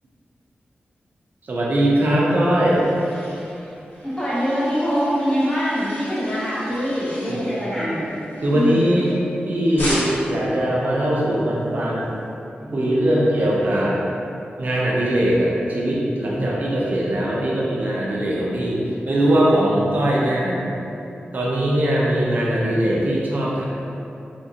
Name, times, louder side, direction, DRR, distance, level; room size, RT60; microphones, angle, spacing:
voice 1, 1.4-2.8 7.3-7.4 7.8-8.0 8.4-9.1 9.5-12.2 12.7-14.0 14.6-18.8 19.1-20.5 21.3-23.6, right 1 dB, 50° right, -5 dB, 0.4 m, -20 dB
sound 1, 2.2-9.4 9.8-10.4, left 1 dB, 60° left, 0.7 m, -35 dB
voice 2, 4.0-8.1 8.5-8.9 11.0-11.8 12.6-13.2 13.6-13.7 16.3-16.7 20.4-20.6, equal, 15° left, -9 dB, 0.8 m, -25 dB
2.8 x 2.4 x 2.7 m, 2.8 s
wide cardioid pair, 120°, 4 cm